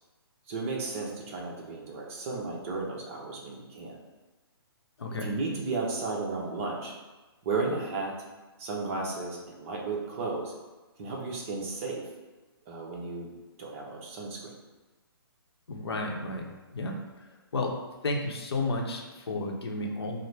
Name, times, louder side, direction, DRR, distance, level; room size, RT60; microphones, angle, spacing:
voice 1, 0.5-4.0 5.2-7.0 7.4-8.2 8.6-10.5 11.0-12.1 12.7-13.3 13.6-14.6, right 3 dB, 30° right, -2 dB, 0.8 m, -34 dB
voice 2, 5.0-5.3 15.7-16.4 16.7-17.0 17.5-17.7 18.0-20.2, left 2 dB, 75° left, 1 dB, 0.7 m, -32 dB
5.8 x 2.0 x 3.3 m, 1.2 s
hypercardioid pair, 145°, 13 cm